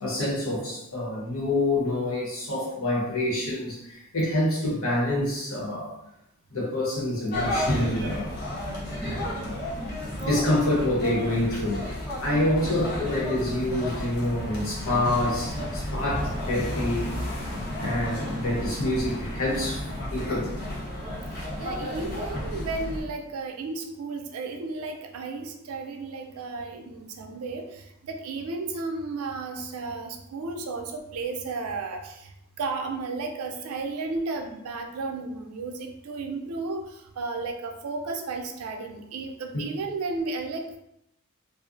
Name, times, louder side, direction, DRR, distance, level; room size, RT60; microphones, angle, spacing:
voice 1, 0.0-5.9 6.5-8.3 9.0-11.8 12.2-17.1 17.8-20.5, left 1 dB, 75° left, -5 dB, 0.9 m, -27 dB
sound 1, 7.3-23.0, left 1 dB, 45° left, 0.7 m, -32 dB
voice 2, 21.3-40.8, right 3 dB, 85° right, 5 dB, 0.4 m, -33 dB
2.4 x 2.0 x 2.5 m, 0.81 s
head